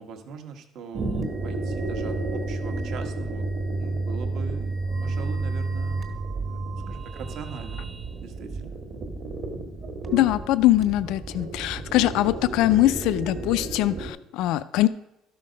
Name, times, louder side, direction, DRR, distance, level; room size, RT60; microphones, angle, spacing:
voice 1, 0.0-6.1 6.4-7.8 8.2-8.8, right 5 dB, 55° right, 6 dB, 1.1 m, -41 dB
sound 1, 0.9-14.1, right 3 dB, 40° right, 1.3 m, -31 dB
voice 2, 10.1-14.9, left 15 dB, 75° left, 14 dB, 0.4 m, -22 dB
12.5 x 5.8 x 5.1 m, 0.87 s
cardioid pair, 155°, 0 cm